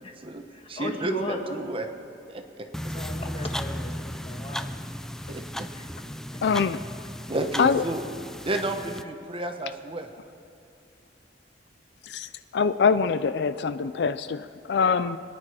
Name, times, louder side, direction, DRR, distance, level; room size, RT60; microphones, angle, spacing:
voice 1, 0.0-1.8 2.9-4.7 5.7-6.4, equal, 35° left, 3 dB, 1.6 m, -36 dB
voice 2, 0.7-1.8 2.3-2.7 5.3-5.7 7.3-8.0 8.4-10.1, right 2 dB, 30° right, 5 dB, 1.0 m, -31 dB
sound 1, 2.7-9.0, equal, 5° left, 0.4 m, -35 dB
voice 3, 6.4-6.8 7.6-7.8 12.0-15.2, left 5 dB, 70° left, 13 dB, 0.4 m, -24 dB
25.5 x 9.9 x 4.9 m, 2.5 s
head